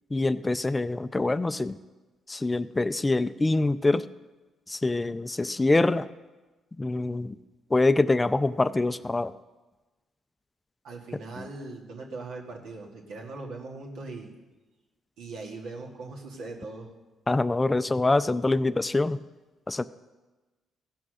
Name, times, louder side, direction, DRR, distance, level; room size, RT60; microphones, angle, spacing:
voice 1, 0.1-1.8 2.3-4.0 4.7-6.1 6.8-7.4 7.7-9.3 17.3-19.2 19.7-19.8, left 2 dB, 20° left, 14 dB, 0.4 m, -25 dB
voice 2, 10.8-14.3 15.2-16.9, right 3 dB, 85° right, -1 dB, 2.0 m, -40 dB
15.5 x 6.0 x 6.4 m, 1.2 s
cardioid pair, 90°, 0 cm